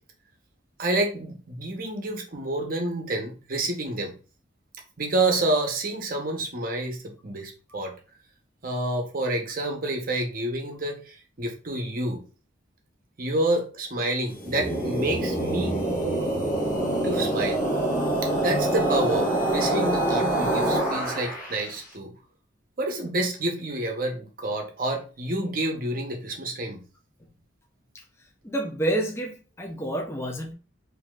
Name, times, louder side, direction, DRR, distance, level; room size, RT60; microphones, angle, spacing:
voice 1, 0.8-4.1 5.0-7.9 8.6-12.2 13.2-15.8 17.0-17.6 18.2-22.1 22.8-26.8, right 2 dB, 45° right, 0.8 m, -28 dB
sound 1, 14.3-21.7, right 1 dB, 40° left, 1.0 m, -25 dB
voice 2, 28.4-30.5, right 1 dB, 15° left, 0.5 m, -28 dB
4.0 x 2.7 x 2.3 m
head